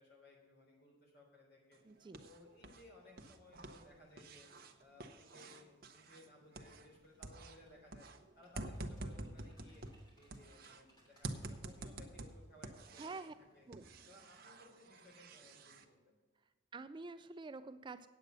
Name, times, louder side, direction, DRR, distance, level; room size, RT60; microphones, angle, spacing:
voice 1, 0.0-1.8 2.2-4.5 4.8-8.1 8.4-9.8 10.2-13.2 13.5-13.7 14.1-16.2, left 1 dB, 55° left, -1 dB, 3.6 m, -61 dB
sound 1, 1.7-2.8 3.1-7.0 7.2-10.8 11.2-13.3 13.7-15.8, right 2 dB, 50° right, 0.8 m, -49 dB
voice 2, 1.8-2.3 13.0-13.3 13.7-13.8 16.7-18.1, right 3 dB, 25° right, 11 dB, 0.3 m, -48 dB
sound 2, 6.9-7.9 8.3-11.8 12.1-12.3, right 1 dB, 20° left, 3.0 m, -71 dB
9.1 x 8.0 x 6.7 m, 1.3 s
head